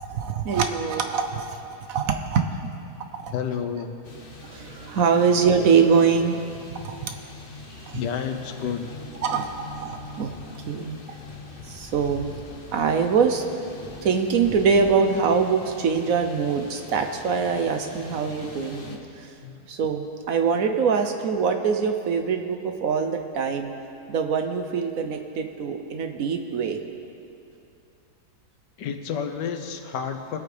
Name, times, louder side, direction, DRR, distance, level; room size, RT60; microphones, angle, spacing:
voice 1, 0.0-2.7 3.1-3.3 4.4-7.2 7.9-8.0 9.2-10.3 10.7-11.2 11.7-12.3 12.7-13.4 14.0-19.3 19.7-23.7 24.1-26.8, right 6 dB, 65° right, 6 dB, 1.0 m, -24 dB
voice 2, 3.3-3.9 7.9-8.9 19.4-19.5 28.8-30.4, left 7 dB, 90° left, 7 dB, 1.5 m, -30 dB
sound 1, 4.0-19.0, left 3 dB, 40° left, 1.0 m, -42 dB
21.0 x 8.5 x 3.4 m, 2.6 s
omnidirectional pair, 1.8 m